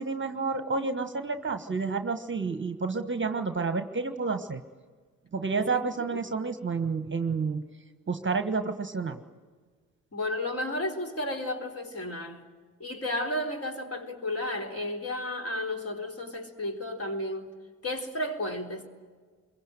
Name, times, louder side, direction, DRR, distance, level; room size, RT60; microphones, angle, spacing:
voice 1, 0.0-4.6 5.3-7.6 8.1-9.2, right 4 dB, 25° right, 1.3 m, -30 dB
voice 2, 10.1-12.4 12.8-17.5 17.8-18.9, left 1 dB, 35° left, 4.0 m, -33 dB
26.5 x 23.0 x 7.8 m
hypercardioid pair, 45°, 43 cm